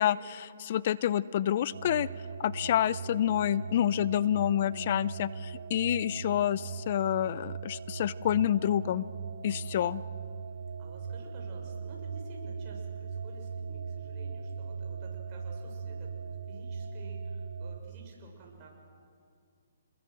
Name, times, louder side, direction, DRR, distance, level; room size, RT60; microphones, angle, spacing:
voice 1, 0.0-2.1 2.4-9.0 9.4-10.0, left 11 dB, 45° left, 19 dB, 0.6 m, -28 dB
sound 1, 1.7-17.8, right 5 dB, 85° right, 2.0 m, -39 dB
voice 2, 9.5-9.8 10.5-18.8, right 3 dB, 30° right, -1 dB, 6.5 m, -52 dB
27.5 x 21.5 x 7.8 m, 2.3 s
hypercardioid pair, 150°, 0 cm